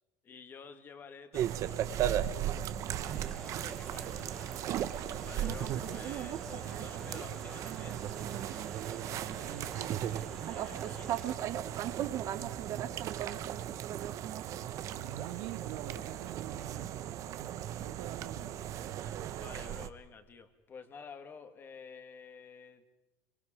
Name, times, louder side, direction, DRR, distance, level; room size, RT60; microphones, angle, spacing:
voice 1, 0.2-2.3 3.4-4.4 5.2-8.0 10.5-11.2 19.4-22.8, left 6 dB, 25° left, 9 dB, 1.8 m, -51 dB
sound 1, 1.3-19.9, right 11 dB, 40° right, 1.0 m, -36 dB
sound 2, 3.0-11.4, left 1 dB, 5° left, 0.8 m, -51 dB
voice 2, 9.3-10.0 12.3-13.2 14.9-18.9, right 12 dB, 70° right, 5 dB, 1.4 m, -46 dB
29.5 x 23.5 x 5.0 m, 1.1 s
cardioid pair, 155°, 8 cm